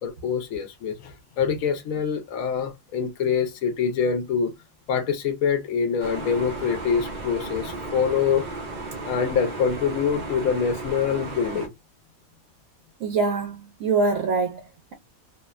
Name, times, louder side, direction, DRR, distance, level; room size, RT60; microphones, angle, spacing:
voice 1, 0.0-4.5 4.9-8.5 9.0-11.7, left 6 dB, 80° left, 1.0 m, -25 dB
sound 1, 6.0-11.7, right 2 dB, 40° right, 0.8 m, -35 dB
voice 2, 13.0-14.6, right 4 dB, 75° right, 1.0 m, -24 dB
2.7 x 2.0 x 2.3 m
omnidirectional pair, 1.4 m